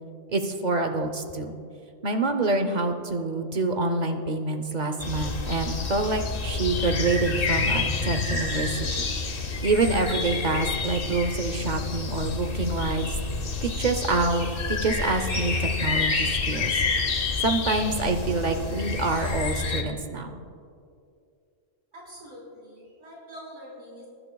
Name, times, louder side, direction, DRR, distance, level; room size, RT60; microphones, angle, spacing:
voice 1, 0.3-1.5 2.0-8.9 9.6-13.1 13.6-16.7 17.4-20.4, right 3 dB, 40° right, 6 dB, 0.8 m, -26 dB
sound 1, 5.0-19.8, left 4 dB, 50° left, 1.1 m, -28 dB
voice 2, 21.9-24.1, equal, 70° right, -7 dB, 4.0 m, -44 dB
22.5 x 11.0 x 2.3 m, 2.4 s
omnidirectional pair, 1.3 m